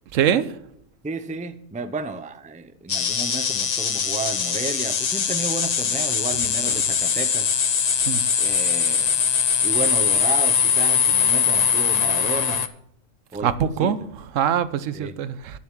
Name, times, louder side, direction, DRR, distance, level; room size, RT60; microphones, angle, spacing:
voice 1, 0.1-0.6 6.7-6.8 8.1-8.2 13.4-15.6, right 9 dB, 85° right, 1.1 m, -24 dB
voice 2, 1.0-7.5 8.4-9.2 9.6-12.7 13.3-13.5 13.8-13.9 14.9-15.2, right 4 dB, 10° right, 0.4 m, -32 dB
sound 1, 2.9-12.7, left 7 dB, 45° left, 0.6 m, -21 dB
10.5 x 7.2 x 6.1 m
omnidirectional pair, 1.3 m